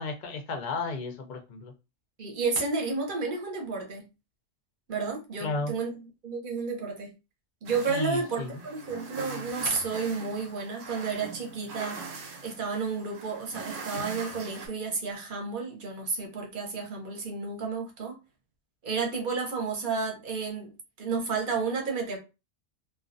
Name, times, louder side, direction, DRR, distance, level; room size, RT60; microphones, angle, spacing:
voice 1, 0.0-1.7 5.4-5.7 7.9-8.6, left 3 dB, 60° left, 0.4 m, -33 dB
voice 2, 2.2-4.0 4.9-7.1 7.6-12.0 12.4-18.2 18.8-20.7 21.0-22.2, right 4 dB, 50° right, 0.8 m, -31 dB
sound 1, 7.7-14.7, right 4 dB, 90° right, 1.0 m, -41 dB
2.3 x 2.2 x 2.5 m
omnidirectional pair, 1.3 m